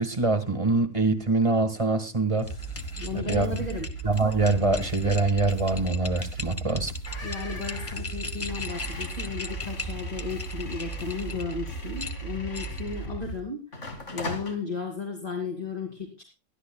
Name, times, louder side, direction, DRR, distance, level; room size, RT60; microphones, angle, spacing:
voice 1, 0.0-2.5 3.1-3.5 4.0-6.9, right 3 dB, 25° right, 9 dB, 1.7 m, -24 dB
sound 1, 2.4-13.4, right 3 dB, 55° left, 2.9 m, -37 dB
sound 2, 2.4-11.5 12.0-12.9, left 4 dB, 10° left, 1.0 m, -39 dB
voice 2, 3.0-3.9 7.2-16.2, left 4 dB, 30° left, 1 dB, 2.8 m, -35 dB
sound 3, 7.1-13.3 13.7-14.6, left 3 dB, 70° left, 2.5 m, -41 dB
21.0 x 13.5 x 2.3 m, 0.28 s
omnidirectional pair, 1.3 m